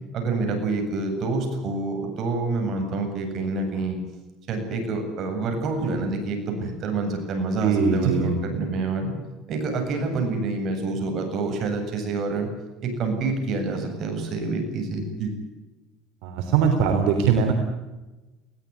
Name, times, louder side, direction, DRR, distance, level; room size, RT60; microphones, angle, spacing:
voice 1, 0.1-4.0 4.5-9.1 9.5-12.5 12.8-15.3, right 3 dB, 50° right, 5 dB, 7.9 m, -27 dB
voice 2, 7.6-8.4 16.2-17.5, right 6 dB, 75° right, 4 dB, 3.5 m, -21 dB
21.5 x 17.5 x 9.8 m, 1.1 s
cardioid pair, 125°, 0 cm